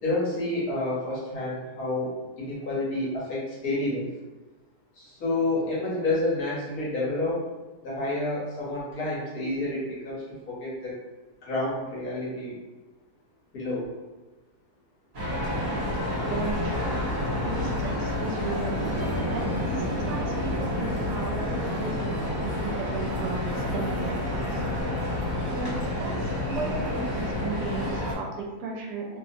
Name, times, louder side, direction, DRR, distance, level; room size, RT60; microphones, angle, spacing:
voice 1, 0.0-4.1 5.0-7.4 7.8-11.0 11.4-12.5 13.5-13.9, left 2 dB, 65° left, -7 dB, 1.4 m, -29 dB
sound 1, 15.1-28.2, left 1 dB, 55° right, 1.4 m, -29 dB
voice 2, 16.2-17.1 17.4-18.8 19.3-24.6 25.5-29.2, right 3 dB, 80° right, 0 dB, 1.2 m, -35 dB
3.1 x 2.0 x 2.6 m, 1.2 s
omnidirectional pair, 1.8 m